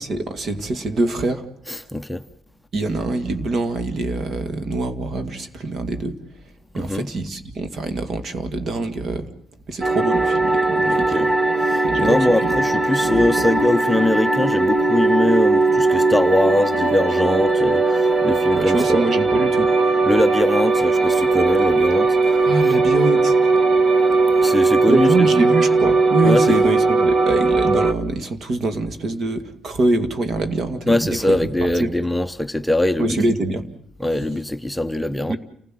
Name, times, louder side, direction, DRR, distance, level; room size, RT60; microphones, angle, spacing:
voice 1, 0.0-1.5 2.7-6.1 6.7-9.3 9.7-11.2 11.8-12.6 13.0-13.3 18.5-19.8 22.5-23.3 24.9-31.4 31.8-32.0 33.0-33.8 35.3-35.4, right 2 dB, 55° right, 2.2 m, -24 dB
voice 2, 1.7-2.2 6.7-7.1 10.9-11.3 11.6-19.0 20.0-22.4 24.4-25.1 26.2-26.5 30.9-33.2 34.0-35.4, left 1 dB, 5° left, 0.9 m, -22 dB
sound 1, 9.8-27.9, right 3 dB, 35° right, 1.6 m, -18 dB
29.0 x 16.0 x 7.7 m
cardioid pair, 90°, 0 cm